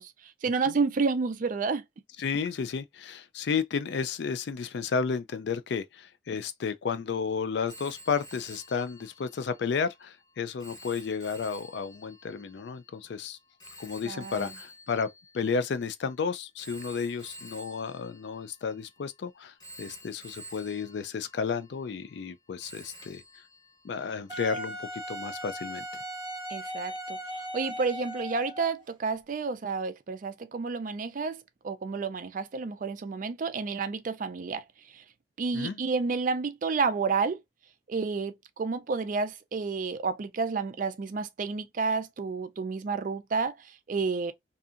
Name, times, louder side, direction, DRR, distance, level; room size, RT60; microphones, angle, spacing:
voice 1, 0.0-1.8 14.0-14.4 26.5-34.6 34.9-35.0 35.4-37.4 37.9-44.3, right 4 dB, 40° right, 0.3 m, -30 dB
voice 2, 2.2-13.4 13.8-15.1 15.3-23.2 23.8-25.8 35.5-35.8, left 5 dB, 55° left, 0.3 m, -32 dB
Telephone, 7.7-16.0 16.6-19.1 19.6-22.3 22.6-24.3, right 1 dB, 20° left, 0.7 m, -50 dB
Wind instrument woodwind instrument, 24.3-28.8, equal, 25° right, 0.7 m, -38 dB
2.7 x 2.5 x 2.4 m
head